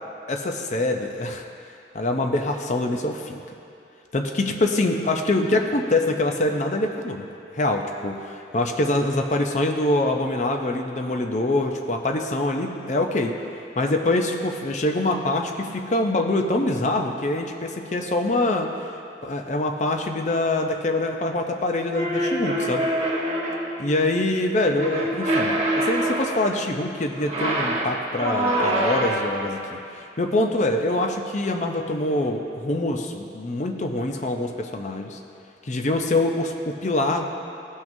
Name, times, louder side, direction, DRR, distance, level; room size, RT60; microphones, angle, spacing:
voice 1, 0.3-1.4 1.9-3.4 4.1-7.3 7.5-13.4 13.8-18.9 19.2-22.9 23.8-35.2 35.6-37.2, left 2 dB, 40° left, 4 dB, 0.5 m, -24 dB
sound 1, 21.9-23.8 24.8-26.6 27.2-29.4, right 1 dB, 35° right, 1.2 m, -25 dB
16.0 x 6.0 x 2.7 m, 2.7 s
head